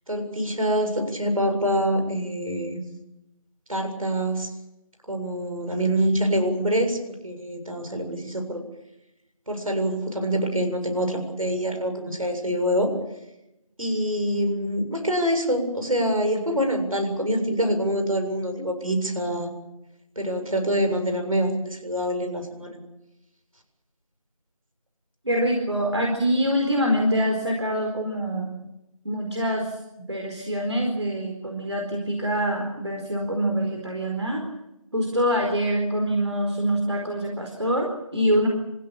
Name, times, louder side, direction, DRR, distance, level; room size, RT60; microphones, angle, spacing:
voice 1, 0.1-2.8 3.7-4.5 5.1-8.6 9.5-12.9 13.8-19.5 20.2-22.8, equal, 70° right, 5 dB, 7.4 m, -25 dB
voice 2, 25.2-28.5 29.0-29.8 30.1-34.4 34.9-38.5, equal, 50° right, 1 dB, 4.5 m, -25 dB
29.0 x 15.5 x 8.9 m, 0.91 s
figure-of-eight pair, 180°, 19 cm